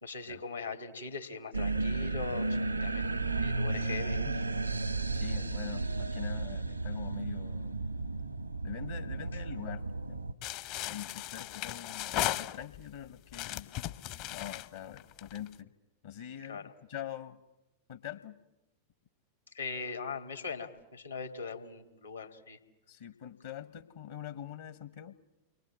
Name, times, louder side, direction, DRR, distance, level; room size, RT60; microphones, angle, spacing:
voice 1, 0.0-4.2 16.4-16.7 19.5-22.6, left 4 dB, 80° left, 6 dB, 2.6 m, -40 dB
sound 1, 1.5-10.3, right 3 dB, 85° right, 1.1 m, -33 dB
voice 2, 5.1-7.8 8.6-10.2 10.8-13.7 14.3-15.7 16.0-17.4 17.9-18.4 22.9-25.2, left 10 dB, 60° left, 11 dB, 1.2 m, -44 dB
sound 2, 10.4-12.9 13.3-15.5, left 13 dB, 45° left, 0.9 m, -36 dB
29.5 x 23.0 x 7.7 m, 0.99 s
figure-of-eight pair, 90°, 0 cm